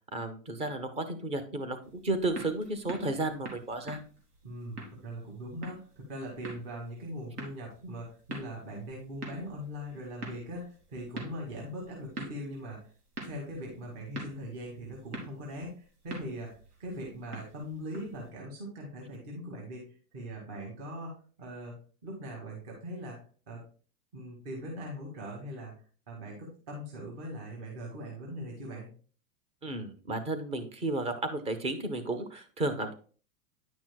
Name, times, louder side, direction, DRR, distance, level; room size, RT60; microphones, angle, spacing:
voice 1, 0.1-4.0 29.6-32.9, right 2 dB, 15° right, 9 dB, 0.5 m, -33 dB
sound 1, 1.8-18.3, right 2 dB, 75° right, 3.1 m, -46 dB
voice 2, 4.4-12.9 13.2-21.8 22.0-23.2 23.5-23.6 24.1-25.7 26.1-28.9, equal, 45° right, -2 dB, 2.2 m, -41 dB
10.0 x 6.1 x 2.2 m, 0.39 s
hypercardioid pair, 135°, 46 cm